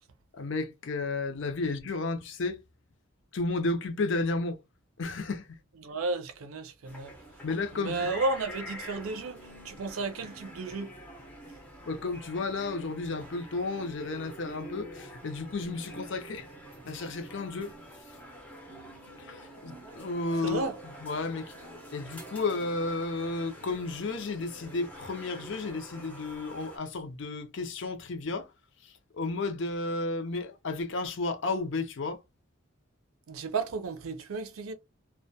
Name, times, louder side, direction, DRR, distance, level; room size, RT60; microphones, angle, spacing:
voice 1, 0.4-2.6 3.3-4.6 5.0-5.6 7.4-8.1 11.9-16.4 16.9-17.8 19.2-20.7 21.0-21.5 21.9-28.5 28.8-32.2, left 3 dB, 60° left, 0.5 m, -32 dB
voice 2, 5.8-7.1 7.7-11.0 20.4-20.8 33.3-34.7, right 3 dB, 80° right, 0.5 m, -33 dB
sound 1, 6.8-26.8, equal, 5° left, 0.5 m, -46 dB
2.2 x 2.2 x 2.6 m
head